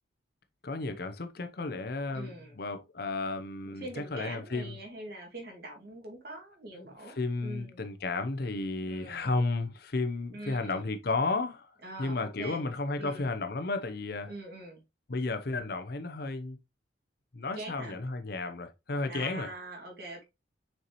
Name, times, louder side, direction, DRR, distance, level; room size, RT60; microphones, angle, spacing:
voice 1, 0.6-4.8 6.7-11.7 12.0-14.3 15.1-16.6 17.3-19.5, left 3 dB, 55° left, 0.8 m, -33 dB
voice 2, 2.1-2.6 3.7-7.2 7.4-7.8 8.8-9.3 10.3-10.8 11.8-12.7 13.0-13.3 14.3-14.8 17.6-18.0 19.1-20.2, right 2 dB, 55° right, 2.3 m, -43 dB
6.7 x 4.6 x 3.0 m
head